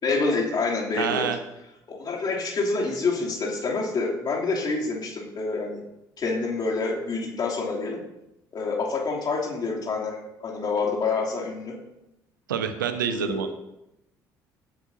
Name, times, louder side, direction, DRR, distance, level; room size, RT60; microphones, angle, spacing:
voice 1, 0.0-1.3 1.9-5.8 6.2-8.0 8.5-11.7 13.0-13.5, left 3 dB, 40° left, -2 dB, 2.9 m, -27 dB
voice 2, 1.0-1.4 12.5-13.5, right 8 dB, 80° right, 9 dB, 0.8 m, -27 dB
16.0 x 8.0 x 2.8 m, 0.86 s
figure-of-eight pair, 55°, 11 cm